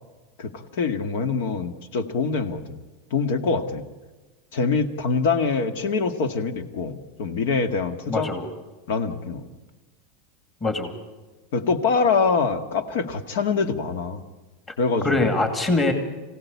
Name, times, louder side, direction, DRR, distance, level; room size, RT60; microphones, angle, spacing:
voice 1, 0.4-2.8 3.1-3.8 4.5-8.3 8.9-9.4 11.5-14.2 14.8-15.3, left 4 dB, 70° left, 9 dB, 2.0 m, -24 dB
voice 2, 8.1-8.5 10.6-10.9 15.0-15.9, left 2 dB, 15° left, 4 dB, 2.4 m, -23 dB
25.5 x 16.5 x 8.4 m, 1.2 s
supercardioid pair, 165°, 0 cm